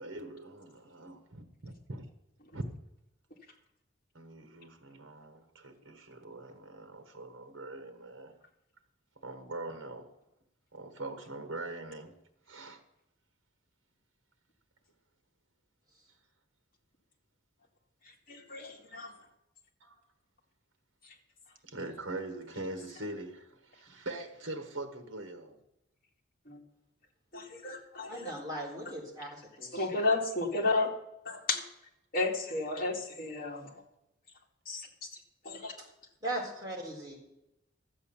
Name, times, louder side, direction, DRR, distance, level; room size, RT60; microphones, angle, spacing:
voice 1, 0.0-2.0 2.5-2.6 4.1-8.3 9.2-10.1 10.7-12.2 12.5-12.8 19.8-20.0 21.6-25.6, right 2 dB, 70° right, 1.4 m, -42 dB
voice 2, 18.3-19.1 26.5-26.6 27.3-28.3 29.7-30.9 31.3-31.6 32.1-33.7 34.7-34.9 35.4-35.7, left 3 dB, 45° left, 2.3 m, -32 dB
voice 3, 28.1-30.0 36.2-37.2, right 1 dB, 20° right, 3.6 m, -39 dB
12.5 x 8.0 x 7.1 m
head